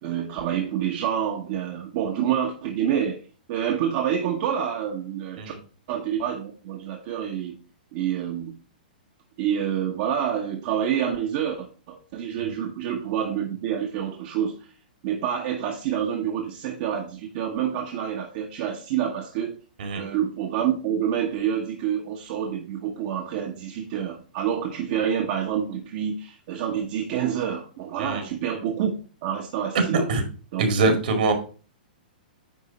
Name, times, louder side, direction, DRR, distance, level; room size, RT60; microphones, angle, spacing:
voice 1, 0.0-3.2 3.5-5.6 5.9-7.6 7.9-8.6 9.4-14.6 15.0-19.5 19.9-28.9 29.2-30.1 30.5-31.0, right 9 dB, 50° right, 1.1 m, -27 dB
voice 2, 29.9-30.2 30.6-31.3, right 3 dB, 65° right, 2.2 m, -23 dB
9.5 x 3.7 x 4.3 m
hypercardioid pair, 120°, 5 cm